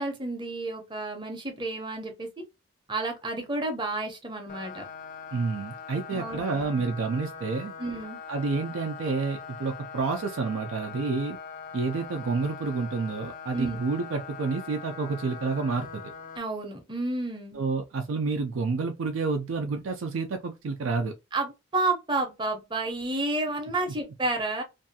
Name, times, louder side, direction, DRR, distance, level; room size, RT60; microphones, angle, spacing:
voice 1, 0.0-2.3 2.9-4.8 6.1-6.9 7.8-8.2 13.5-13.8 16.4-17.6 21.3-24.6, right 2 dB, 25° right, 0.6 m, -31 dB
sound 1, 4.5-16.4, left 5 dB, 40° left, 0.3 m, -42 dB
voice 2, 5.3-7.7 8.3-11.4 11.7-16.0 17.5-21.1, right 4 dB, 80° right, 0.4 m, -29 dB
2.6 x 2.3 x 2.7 m
head